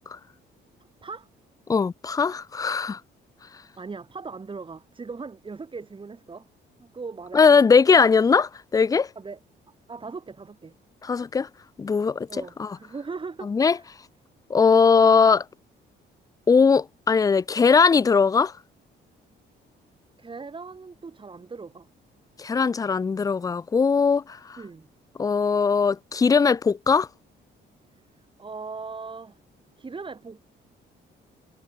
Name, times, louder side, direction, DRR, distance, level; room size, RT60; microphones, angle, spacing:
voice 1, 1.7-3.0 7.3-9.1 11.0-11.5 11.8-12.8 13.4-13.8 14.5-15.4 16.5-18.5 22.4-24.6 25.2-27.1, left 5 dB, 20° left, 0.3 m, -20 dB
voice 2, 3.8-6.5 6.8-7.5 9.1-9.4 9.9-10.7 12.3-13.9 20.2-21.9 24.6-24.9 28.4-29.4 29.8-30.4, right 4 dB, 25° right, 1.2 m, -39 dB
cardioid pair, 90°, 20 cm